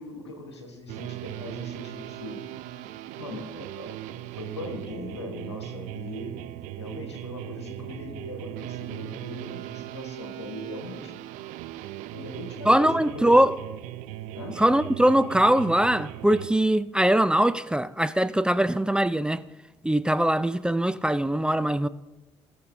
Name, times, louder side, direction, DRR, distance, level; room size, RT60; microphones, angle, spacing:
voice 1, 0.0-2.4 3.2-4.0 4.4-6.4 6.8-11.2 12.1-13.4 14.3-14.6, left 1 dB, 90° left, 1.2 m, -39 dB
sound 1, 0.9-16.5, right 14 dB, 70° right, 0.5 m, -38 dB
voice 2, 12.7-13.5 14.6-19.4 19.8-21.9, right 1 dB, 5° right, 0.4 m, -22 dB
18.5 x 6.8 x 2.6 m
figure-of-eight pair, 45°, 14 cm